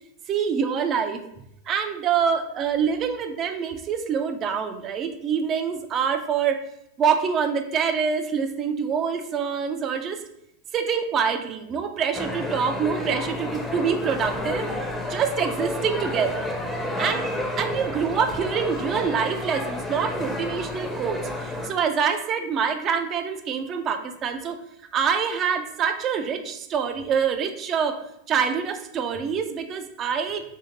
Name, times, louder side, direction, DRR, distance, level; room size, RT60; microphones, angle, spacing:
voice 1, 0.3-1.2 1.7-6.6 7.0-10.2 10.7-14.7 15.1-16.5 17.0-17.3 17.6-24.6 24.9-28.0 28.3-30.4, right 7 dB, 35° right, 7 dB, 0.4 m, -25 dB
sound 1, 12.1-21.7, left 1 dB, 5° left, 0.6 m, -30 dB
2.8 x 2.8 x 3.8 m, 0.80 s
hypercardioid pair, 95°, 0 cm